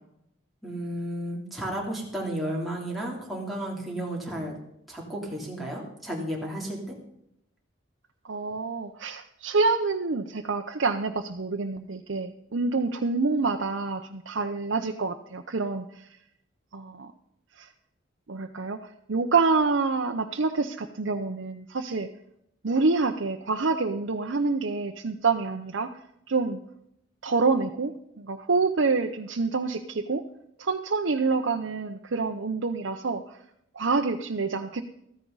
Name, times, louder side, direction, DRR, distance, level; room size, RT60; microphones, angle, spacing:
voice 1, 0.6-4.6 4.9-7.0, right 1 dB, ahead, -4 dB, 3.2 m, -33 dB
voice 2, 8.3-16.2 16.7-17.1 17.5-17.7 18.3-22.1 22.6-26.0 26.3-26.6 27.2-30.2 30.6-33.4 33.7-34.8, right 4 dB, 70° right, 3 dB, 0.7 m, -27 dB
15.0 x 14.0 x 4.0 m, 0.76 s
head